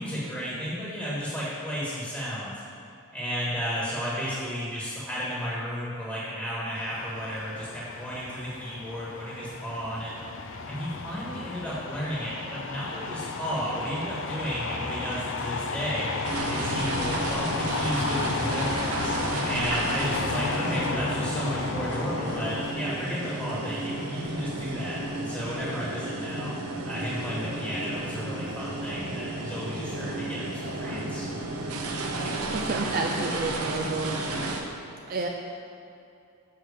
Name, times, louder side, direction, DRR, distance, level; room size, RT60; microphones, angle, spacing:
voice 1, 0.0-2.5 3.1-10.1 10.6-16.1 16.5-19.1 19.4-26.5 26.9-31.3, equal, 5° left, -8 dB, 1.4 m, -33 dB
sound 1, 6.8-22.7, left 4 dB, 60° left, 0.5 m, -33 dB
sound 2, 16.2-34.6, right 2 dB, 85° right, 0.9 m, -32 dB
voice 2, 32.5-34.1 35.1-35.3, right 3 dB, 40° right, 1 dB, 0.4 m, -29 dB
7.1 x 5.8 x 4.9 m, 2.6 s
head